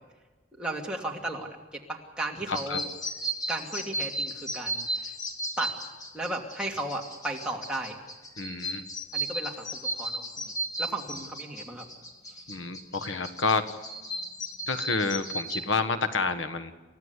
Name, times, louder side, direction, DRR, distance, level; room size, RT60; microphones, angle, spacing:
voice 1, 0.5-2.8 3.5-5.1 5.6-5.7 6.1-8.0 9.1-11.9, right 2 dB, 5° right, -1 dB, 2.6 m, -35 dB
voice 2, 2.5-2.8 8.4-8.8 12.5-13.6 14.7-16.7, left 4 dB, 85° left, 9 dB, 1.4 m, -29 dB
sound 1, 2.5-15.7, right 1 dB, 20° left, 2.2 m, -35 dB
28.5 x 15.0 x 8.3 m, 1.2 s
head